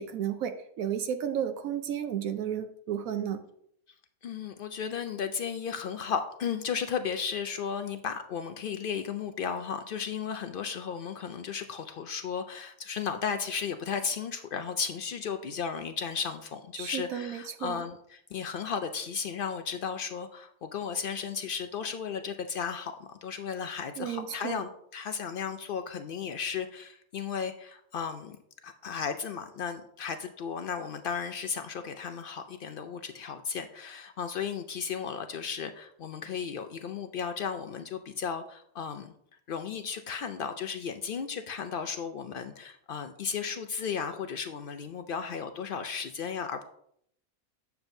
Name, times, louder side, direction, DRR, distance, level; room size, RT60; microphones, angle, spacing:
voice 1, 0.0-3.4 16.7-17.9 24.0-24.6, right 9 dB, 80° right, 8 dB, 1.0 m, -33 dB
voice 2, 4.2-28.4 28.6-39.1 39.5-46.6, left 6 dB, 80° left, 8 dB, 0.4 m, -35 dB
8.9 x 6.9 x 2.6 m, 0.70 s
omnidirectional pair, 1.5 m